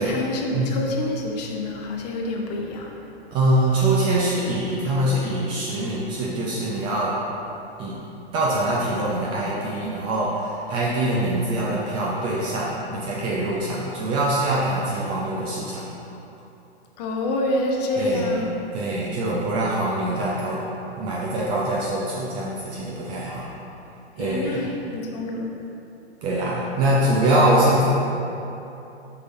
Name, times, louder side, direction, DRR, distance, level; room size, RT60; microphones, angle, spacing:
voice 1, 0.0-2.9 17.0-18.5 24.2-25.5, left 2 dB, 40° left, 1 dB, 0.8 m, -27 dB
voice 2, 3.3-7.2 7.8-8.0 8.3-15.9 18.0-18.4 18.7-20.6 21.0-23.5 24.2-24.7 26.2-27.9, right 1 dB, 15° right, -5 dB, 0.4 m, -24 dB
7.6 x 5.8 x 2.6 m, 2.9 s
figure-of-eight pair, 120°, 33 cm